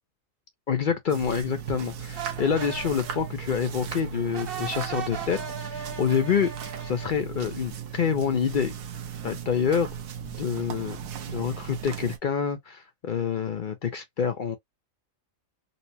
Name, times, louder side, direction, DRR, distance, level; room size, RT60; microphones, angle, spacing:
voice 1, 0.7-8.7 9.2-9.9 10.4-11.0 11.3-14.6, left 7 dB, 55° left, 0.5 m, -27 dB
sound 1, 1.1-12.2, right 8 dB, 85° right, 1.2 m, -37 dB
sound 2, 2.1-7.2, right 7 dB, 50° right, 0.9 m, -38 dB
4.0 x 2.1 x 2.6 m
omnidirectional pair, 1.4 m